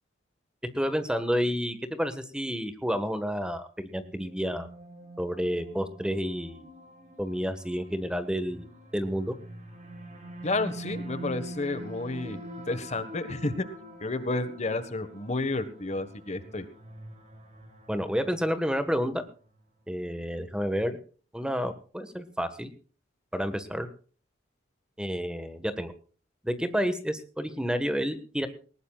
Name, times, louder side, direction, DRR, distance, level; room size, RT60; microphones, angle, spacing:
voice 1, 0.7-4.7 5.2-6.7 7.2-8.7 8.9-9.3 17.9-19.3 19.9-21.0 21.3-22.7 23.3-23.9 25.0-25.9 26.4-28.5, equal, 5° right, 10 dB, 1.5 m, -30 dB
sound 1, 3.9-19.2, right 1 dB, 40° right, 7.7 m, -45 dB
voice 2, 10.4-12.4 12.7-13.6 14.0-16.6, left 2 dB, 35° left, 12 dB, 1.4 m, -31 dB
20.0 x 19.5 x 2.4 m, 0.39 s
head